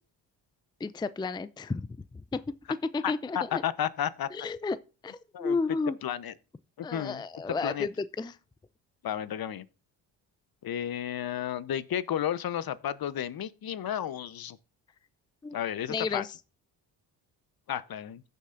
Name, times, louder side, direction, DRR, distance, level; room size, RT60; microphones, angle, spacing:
voice 1, 0.8-1.8 2.3-2.4 2.9-3.6 4.3-4.8 5.0-6.0 6.8-8.4 15.4-15.6 15.9-16.3, left 4 dB, 10° left, 0.5 m, -32 dB
voice 2, 3.0-4.3 5.3-5.6 6.0-6.3 6.8-7.9 9.0-9.7 10.6-14.6 15.5-16.3 17.7-18.2, left 10 dB, 50° left, 0.9 m, -32 dB
15.5 x 6.7 x 2.6 m
supercardioid pair, 60°, 47 cm